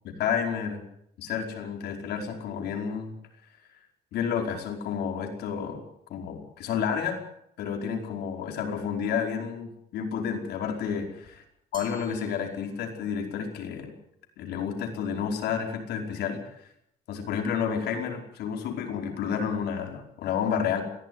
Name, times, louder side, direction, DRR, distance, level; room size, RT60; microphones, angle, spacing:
voice 1, 0.2-0.9 1.2-3.2 4.1-5.8 6.1-7.2 7.6-11.3 11.7-14.0 14.4-16.4 17.1-20.8, left 7 dB, 75° left, 3 dB, 5.0 m, -30 dB
Glass, 11.7-13.2, right 4 dB, 30° right, 4.8 m, -50 dB
21.5 x 14.5 x 9.5 m, 0.75 s
cardioid pair, 110°, 17 cm